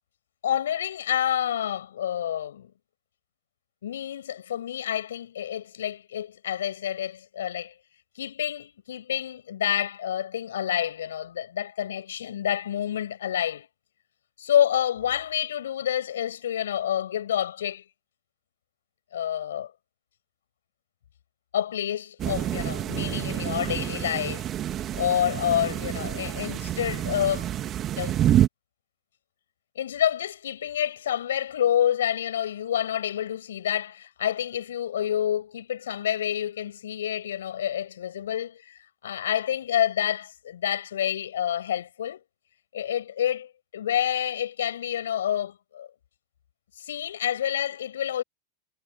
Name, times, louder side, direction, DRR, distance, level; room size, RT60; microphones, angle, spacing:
voice 1, 0.4-2.7 3.8-7.7 8.1-13.7 14.4-17.8 19.1-19.7 21.5-24.5 24.9-27.5 28.0-28.2 29.7-42.2 42.7-45.9 46.8-48.2, left 10 dB, 75° left, 6.5 m, -28 dB
sound 1, 22.2-28.5, right 11 dB, 35° right, 2.0 m, -28 dB
hypercardioid pair, 105°, 0 cm